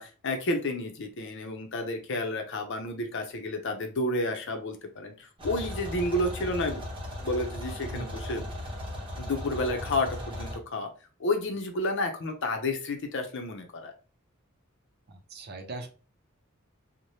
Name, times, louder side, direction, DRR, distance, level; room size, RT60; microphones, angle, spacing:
voice 1, 0.0-6.8 7.2-8.4 9.2-10.9 11.2-13.9, left 1 dB, 65° left, 4 dB, 0.6 m, -31 dB
sound 1, 5.4-10.6, left 1 dB, 25° right, 0.8 m, -37 dB
voice 2, 15.1-15.9, right 2 dB, 50° right, 4 dB, 0.6 m, -40 dB
3.2 x 2.1 x 2.7 m, 0.36 s
head